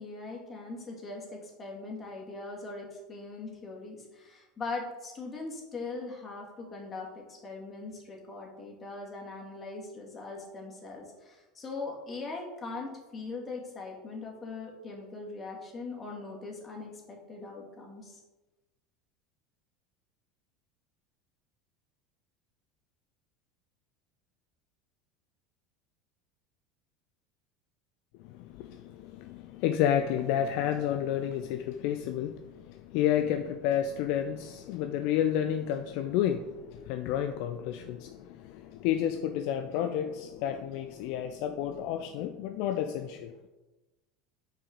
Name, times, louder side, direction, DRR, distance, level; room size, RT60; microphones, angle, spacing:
voice 1, 0.0-18.2, left 3 dB, 30° left, -1 dB, 2.1 m, -41 dB
voice 2, 28.2-43.3, left 10 dB, 60° left, 7 dB, 0.4 m, -31 dB
5.7 x 4.7 x 5.2 m, 1.1 s
figure-of-eight pair, 75°, 0 cm